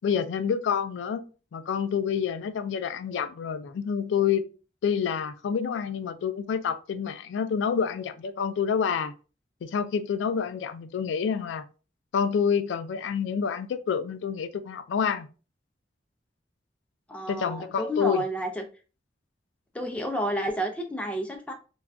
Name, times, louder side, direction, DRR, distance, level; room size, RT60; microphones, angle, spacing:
voice 1, 0.0-1.2 1.5-4.4 4.8-9.1 9.6-11.6 12.1-15.3 17.3-18.2, left 7 dB, 90° left, 0.3 m, -28 dB
voice 2, 17.1-18.6 19.7-21.5, right 1 dB, 5° left, 0.4 m, -30 dB
2.4 x 2.2 x 3.5 m
head